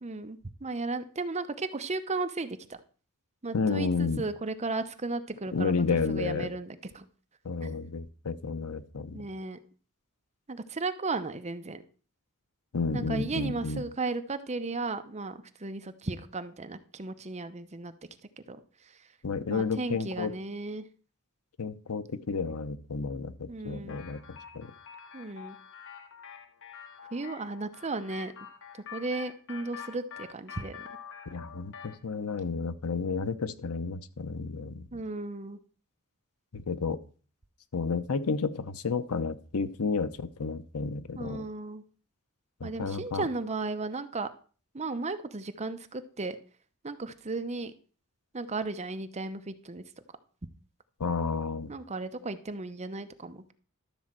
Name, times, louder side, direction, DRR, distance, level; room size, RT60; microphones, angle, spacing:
voice 1, 0.0-2.8 3.4-7.1 7.6-7.7 9.1-9.6 10.5-11.8 12.9-17.9 18.5-18.6 19.5-20.9 23.5-24.0 25.1-25.6 27.1-28.3 28.9-30.8 34.9-35.6 41.2-41.8 42.6-44.3 44.7-46.4 46.8-47.7 48.3-49.8 51.7-53.5, right 3 dB, 30° right, 10 dB, 0.8 m, -35 dB
voice 2, 3.5-4.2 5.5-6.5 7.4-9.2 12.7-13.8 19.2-20.3 21.6-24.7 31.3-34.9 36.5-37.0 37.7-41.4 42.6-43.2 51.0-51.7, left 4 dB, 85° left, 13 dB, 0.8 m, -31 dB
sound 1, 23.9-32.0, left 7 dB, 60° left, 1.3 m, -47 dB
12.5 x 4.3 x 7.5 m, 0.40 s
head